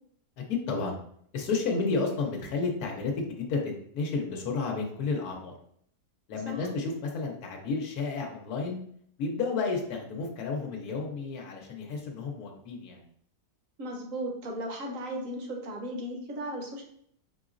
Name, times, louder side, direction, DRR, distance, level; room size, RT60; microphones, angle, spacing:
voice 1, 0.4-1.0 1.3-5.6 6.3-8.8 9.2-13.0, left 4 dB, 90° left, 1 dB, 1.3 m, -31 dB
voice 2, 13.8-16.8, right 1 dB, 65° right, 1 dB, 1.2 m, -36 dB
4.5 x 3.9 x 2.5 m, 0.67 s
omnidirectional pair, 1.5 m